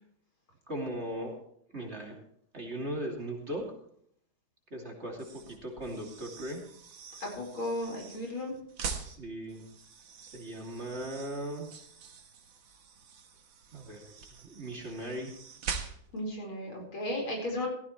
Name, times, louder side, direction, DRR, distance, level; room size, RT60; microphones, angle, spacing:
voice 1, 0.7-1.3 1.7-2.2 2.5-3.6 4.7-6.6 9.0-9.6 10.3-11.7 13.7-14.1 14.4-15.3, right 1 dB, 35° right, 0 dB, 3.0 m, -38 dB
sound 1, 5.1-16.3, right 6 dB, 75° right, 2.2 m, -44 dB
voice 2, 7.2-8.5 16.1-17.7, left 1 dB, 85° left, 0 dB, 5.6 m, -35 dB
16.0 x 14.5 x 3.2 m, 0.67 s
omnidirectional pair, 2.2 m